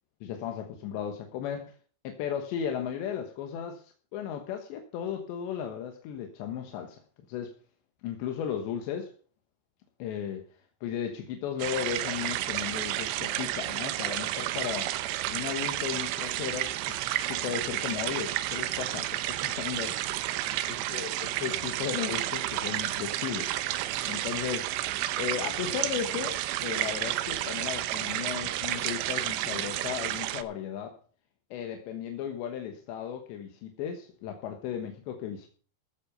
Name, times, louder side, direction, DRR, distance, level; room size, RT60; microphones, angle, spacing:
voice 1, 0.2-1.7 2.1-7.0 7.3-7.6 8.0-9.1 10.0-10.4 10.8-14.9 15.3-20.0 20.9-23.5 24.1-24.7 25.1-26.4 26.6-31.0 31.5-35.5, left 9 dB, 85° left, 3.6 m, -35 dB
sound 1, 11.6-30.4, right 14 dB, 85° right, 3.1 m, -31 dB
15.5 x 8.8 x 5.3 m
omnidirectional pair, 5.0 m